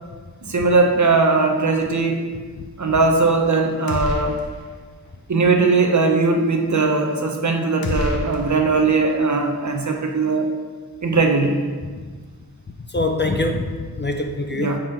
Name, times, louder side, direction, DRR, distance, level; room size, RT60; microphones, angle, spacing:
voice 1, 0.4-2.3 2.8-4.4 5.3-10.5 11.0-11.6 14.5-14.8, right 3 dB, 50° right, 3 dB, 0.8 m, -19 dB
sound 1, 3.9-4.8 5.0-5.2 7.8-9.1, left 1 dB, 65° left, 0.9 m, -28 dB
voice 2, 12.9-14.8, left 2 dB, 30° left, 4 dB, 0.4 m, -24 dB
5.2 x 3.7 x 5.6 m, 1.5 s
wide cardioid pair, 70°, 38 cm